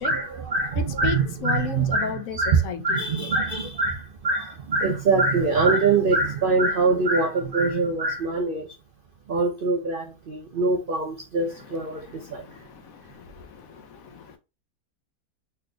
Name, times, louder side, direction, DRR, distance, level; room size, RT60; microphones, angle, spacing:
voice 1, 0.0-8.6 9.3-12.0 12.3-12.4, right 3 dB, 65° right, 0.5 m, -23 dB
voice 2, 0.8-3.0 11.5-14.4, left 7 dB, 70° left, 0.9 m, -35 dB
3.7 x 3.3 x 2.2 m
omnidirectional pair, 1.6 m